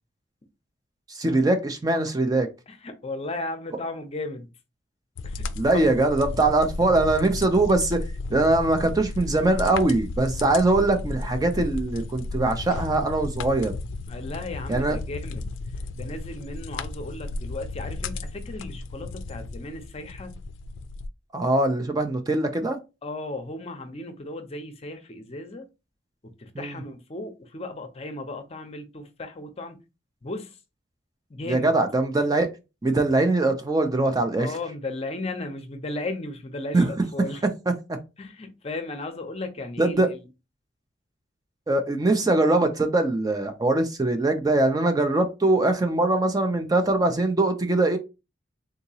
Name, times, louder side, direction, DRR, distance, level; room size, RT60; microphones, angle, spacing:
voice 1, 1.1-2.5 5.6-8.0 8.3-13.7 14.7-15.0 21.3-22.8 26.6-26.8 31.5-32.5 32.8-34.6 36.7-36.9 37.7-37.8 39.8-40.1 41.7-48.0, right 2 dB, 20° right, 0.4 m, -22 dB
voice 2, 2.7-4.5 5.2-6.0 14.1-15.5 15.9-20.3 23.0-25.6 26.4-29.8 30.2-30.6 31.3-31.7 34.4-37.4 38.2-40.3, left 2 dB, 35° left, 0.6 m, -35 dB
sound 1, 5.2-21.1, left 3 dB, 85° left, 0.4 m, -34 dB
3.7 x 2.8 x 2.7 m
head